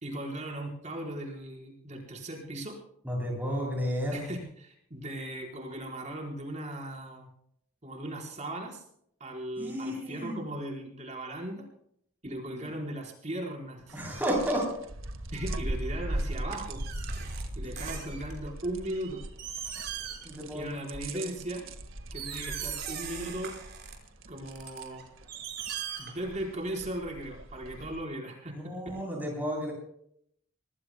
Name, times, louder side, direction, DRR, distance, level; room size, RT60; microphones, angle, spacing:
voice 1, 0.0-2.8 4.1-7.3 7.8-8.8 9.2-11.7 12.2-14.0 15.3-16.8 17.6-19.2 20.5-21.7 22.1-23.5 24.3-25.0 26.0-29.0, right 1 dB, 35° right, -1 dB, 4.3 m, -38 dB
voice 2, 3.0-4.3 9.6-10.4 12.5-12.6 13.9-14.7 20.2-20.7 21.1-21.2 28.5-29.7, equal, 10° right, -1 dB, 8.0 m, -32 dB
sound 1, 13.9-28.0, right 1 dB, 75° right, 1.7 m, -40 dB
sound 2, 16.5-18.5 19.0-19.1 19.4-20.4 20.7-21.0 21.6-21.7 22.1-23.9 24.5-26.5 26.8-26.9, right 8 dB, 50° right, 5.0 m, -39 dB
26.0 x 20.0 x 2.2 m, 0.70 s
head